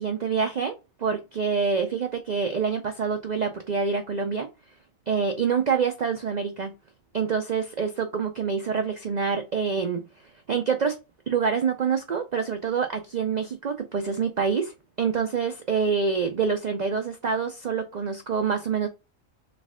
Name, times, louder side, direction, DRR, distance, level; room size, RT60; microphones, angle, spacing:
voice 1, 0.0-4.5 5.1-6.7 7.1-10.0 10.5-11.0 11.3-18.9, right 6 dB, 80° right, 0.3 m, -26 dB
3.4 x 3.1 x 3.5 m
omnidirectional pair, 1.4 m